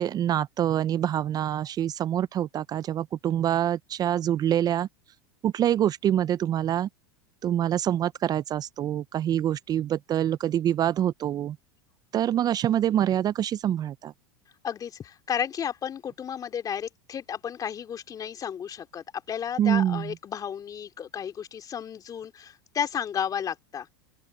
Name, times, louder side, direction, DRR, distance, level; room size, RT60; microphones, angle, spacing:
voice 1, 0.0-4.9 5.4-6.9 7.4-11.6 12.1-14.1 19.6-20.1, right 11 dB, 30° right, 0.6 m, -25 dB
voice 2, 14.6-23.9, left 8 dB, 30° left, 2.7 m, -33 dB
open air
hypercardioid pair, 100°, 12 cm